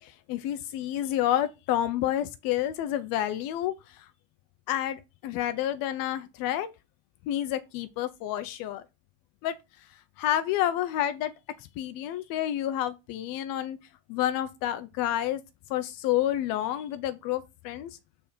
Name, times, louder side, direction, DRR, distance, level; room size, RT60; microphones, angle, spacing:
voice 1, 0.0-4.1 4.7-6.7 7.3-8.8 9.4-9.6 10.2-11.3 11.8-13.8 14.1-15.4 15.7-17.9, left 12 dB, 50° left, 0.7 m, -29 dB
6.8 x 3.7 x 4.3 m
supercardioid pair, 145°, 44 cm